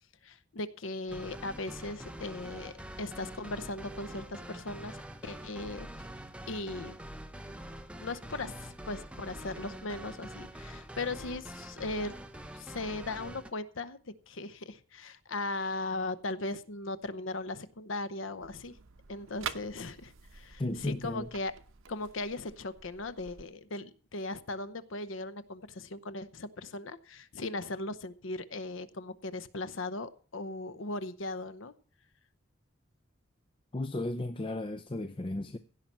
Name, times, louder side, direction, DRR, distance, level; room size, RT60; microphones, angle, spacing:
voice 1, 0.2-5.9 6.5-6.9 8.0-12.1 12.5-14.0 14.3-18.7 19.1-21.5 21.9-31.7, left 2 dB, 70° left, 0.8 m, -38 dB
sound 1, 1.1-13.5, right 1 dB, 5° right, 0.8 m, -45 dB
sound 2, 18.4-23.4, right 7 dB, 80° right, 0.9 m, -46 dB
voice 2, 20.6-21.3 33.7-35.6, left 2 dB, 25° left, 0.5 m, -34 dB
16.0 x 5.7 x 7.3 m
head